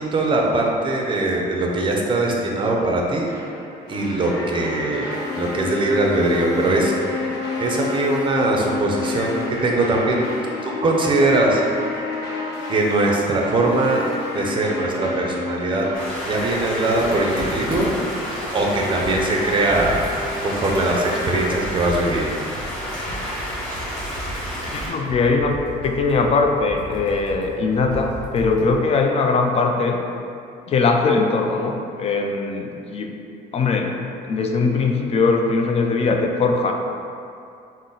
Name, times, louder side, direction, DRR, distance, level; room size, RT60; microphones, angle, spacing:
voice 1, 0.0-3.3 3.9-6.9 7.6-10.2 10.6-11.7 12.7-14.0 14.3-15.9 16.3-17.9 18.5-20.1 20.4-22.3, right 2 dB, 30° right, 0 dB, 0.5 m, -21 dB
sound 1, 3.3-21.6, left 3 dB, 85° left, 0.7 m, -30 dB
sound 2, 15.9-24.9, equal, 5° left, 1.3 m, -31 dB
Computer keyboard, 17.0-18.2 18.6-18.7 19.0-28.9, right 1 dB, 55° left, 1.1 m, -35 dB
voice 2, 24.7-25.6 25.8-30.0 30.7-33.1 33.5-36.7, left 4 dB, 35° left, 3 dB, 0.4 m, -20 dB
3.8 x 2.1 x 3.8 m, 2.5 s
cardioid pair, 110°, 17 cm